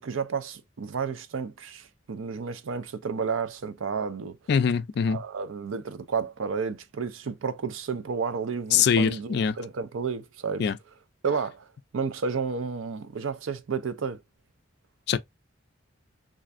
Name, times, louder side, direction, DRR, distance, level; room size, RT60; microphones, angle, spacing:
voice 1, 0.0-4.4 5.1-10.7 11.2-11.7 11.9-14.2, right 5 dB, 80° right, 0.5 m, -31 dB
voice 2, 4.5-5.2 8.7-9.6 10.6-10.8 15.1-15.2, left 7 dB, 55° left, 0.3 m, -23 dB
3.3 x 2.5 x 2.5 m
head